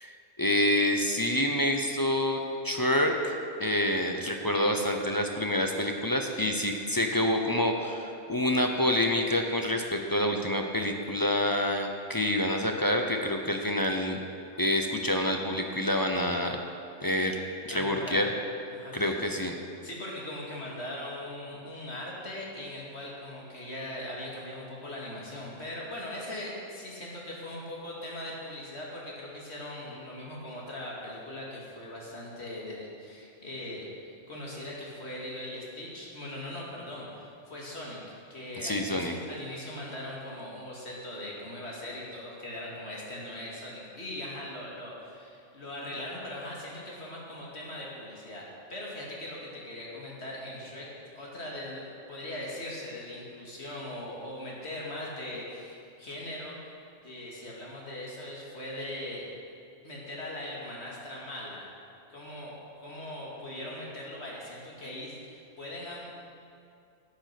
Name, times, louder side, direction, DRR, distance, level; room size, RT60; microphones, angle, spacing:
voice 1, 0.0-3.3 3.6-14.2 14.6-16.6 17.0-17.4 17.7-18.3 18.9-19.5 38.6-39.1, left 1 dB, 20° left, 3 dB, 0.7 m, -27 dB
voice 2, 17.7-18.3 18.7-19.1 19.8-33.9 34.3-56.7 57.0-59.3 59.8-61.7 62.1-62.5 62.8-66.1, left 1 dB, 60° left, -4 dB, 2.6 m, -40 dB
11.5 x 9.4 x 6.0 m, 2.5 s
omnidirectional pair, 1.3 m